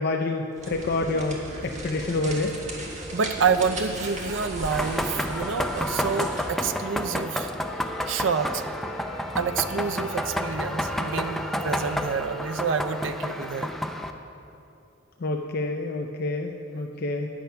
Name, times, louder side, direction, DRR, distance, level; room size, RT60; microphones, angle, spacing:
voice 1, 0.0-1.4 1.6-2.5 15.2-17.3, left 2 dB, 55° left, 3 dB, 0.5 m, -27 dB
sound 1, 0.5-6.6, right 1 dB, 40° right, 1.5 m, -36 dB
voice 2, 3.0-7.5 8.1-8.6 9.4-13.7, right 5 dB, 90° right, 9 dB, 0.5 m, -28 dB
sound 2, 4.7-14.1, left 1 dB, ahead, 0.4 m, -30 dB
Wind instrument woodwind instrument, 7.6-13.4, left 2 dB, 90° left, 1.1 m, -42 dB
10.5 x 8.7 x 5.6 m, 2.7 s
head